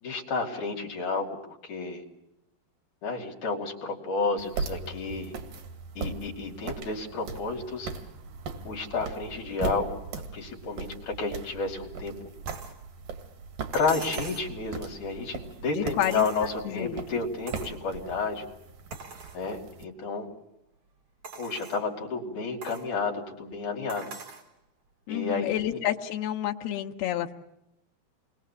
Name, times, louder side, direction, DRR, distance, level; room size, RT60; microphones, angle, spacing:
voice 1, 0.0-1.4 1.6-2.0 3.0-5.4 6.0-7.9 8.6-10.0 10.3-12.1 13.7-18.4 19.3-20.3 21.4-24.1 25.1-25.8, left 4 dB, 55° left, 1 dB, 4.1 m, -31 dB
sound 1, 4.4-19.8, right 5 dB, 60° right, 3.4 m, -39 dB
sound 2, 12.5-12.8 13.7-14.5 16.0-16.8 17.5-17.8 18.3-18.4 18.9-19.4 20.0-20.1 21.2-21.9 22.6-22.9 23.9-24.5 25.7-25.8, right 5 dB, 40° right, 3.7 m, -42 dB
voice 2, 15.8-16.2 16.6-17.0 25.1-27.3, left 12 dB, 90° left, 3 dB, 3.1 m, -29 dB
28.5 x 22.0 x 7.3 m, 0.86 s
omnidirectional pair, 4.5 m